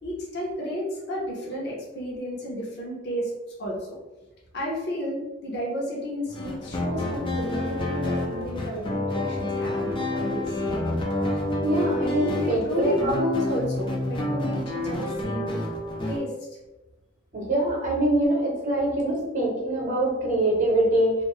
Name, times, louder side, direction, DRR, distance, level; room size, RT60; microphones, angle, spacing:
voice 1, 0.0-3.3 3.6-4.0 4.5-10.8 12.0-12.1 12.4-15.6 16.0-16.5, equal, 55° left, -4 dB, 0.8 m, -32 dB
sound 1, 6.3-16.2, left 1 dB, 25° left, 0.4 m, -28 dB
voice 2, 11.6-13.2 17.3-21.2, right 1 dB, 40° right, -3 dB, 0.9 m, -24 dB
2.6 x 2.5 x 3.1 m, 1.1 s
head